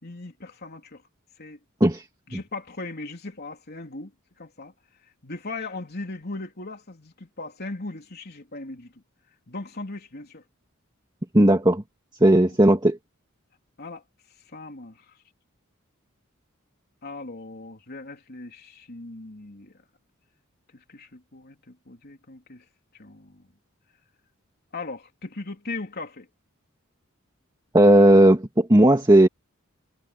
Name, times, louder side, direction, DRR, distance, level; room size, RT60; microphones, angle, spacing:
voice 1, 0.0-1.0 1.4-1.6 2.3-4.1 4.4-4.7 5.2-8.9 9.5-10.4 12.4-12.6 13.8-14.0 14.5-15.2 17.0-19.7 20.7-22.6 22.9-23.5 24.7-26.3, left 3 dB, 50° left, 3.5 m, -38 dB
voice 2, 11.3-11.8 12.2-13.0 27.7-29.3, right 1 dB, 20° right, 1.7 m, -16 dB
head